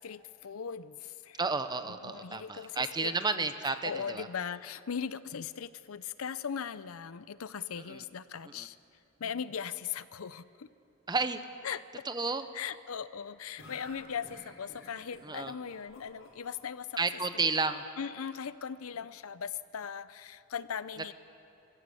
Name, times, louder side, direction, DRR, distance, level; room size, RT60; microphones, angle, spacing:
voice 1, 0.0-1.4 1.8-8.8 9.2-10.7 11.6-11.8 12.5-17.5 18.0-21.1, left 7 dB, 80° left, 16 dB, 0.6 m, -39 dB
voice 2, 1.4-4.3 7.9-8.0 8.6-8.7 11.1-11.4 12.1-12.4 15.2-15.5 17.0-17.8, right 4 dB, 20° right, 10 dB, 0.8 m, -31 dB
sound 1, 13.6-16.5, left 1 dB, 65° left, 5.7 m, -52 dB
23.0 x 14.5 x 8.4 m, 2.6 s
head